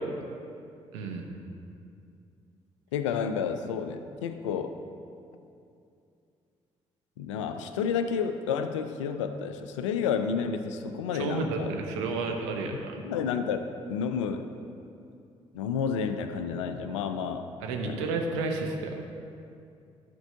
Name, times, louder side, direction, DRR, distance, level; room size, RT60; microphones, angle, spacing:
voice 1, 0.9-1.3 11.1-13.0 17.6-19.0, right 3 dB, 80° right, 2 dB, 0.8 m, -31 dB
voice 2, 2.9-4.8 7.2-11.7 13.0-13.6 13.9-14.5 15.5-18.1, left 6 dB, 80° left, 9 dB, 0.4 m, -30 dB
11.5 x 4.6 x 5.7 m, 2.5 s
figure-of-eight pair, 40°, 15 cm